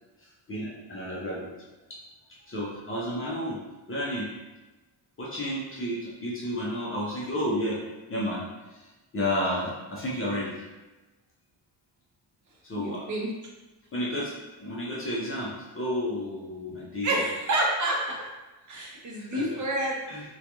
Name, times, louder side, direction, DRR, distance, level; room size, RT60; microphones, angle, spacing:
voice 1, 0.2-1.5 1.9-2.0 2.5-3.6 3.9-4.3 5.2-7.8 8.1-8.4 8.7-10.5 12.6-13.1 13.9-14.3 14.6-17.2 19.1-19.4 20.1-20.2, equal, 30° left, -5 dB, 0.5 m, -31 dB
voice 2, 12.8-13.3 17.0-18.3 18.7-20.0, right 1 dB, 40° right, -2 dB, 0.6 m, -28 dB
2.4 x 2.2 x 2.8 m, 1.1 s
cardioid pair, 140°, 50 cm